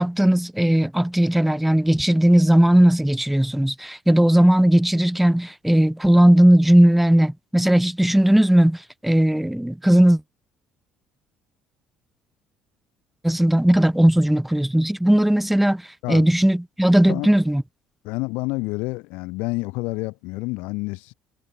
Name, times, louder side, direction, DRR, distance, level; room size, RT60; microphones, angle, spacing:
voice 1, 0.0-8.8 9.0-10.2 13.2-15.8 16.1-17.6, right 1 dB, 5° right, 1.3 m, -17 dB
voice 2, 18.0-21.1, left 25 dB, 80° left, 0.8 m, -28 dB
supercardioid pair, 70°, 3 cm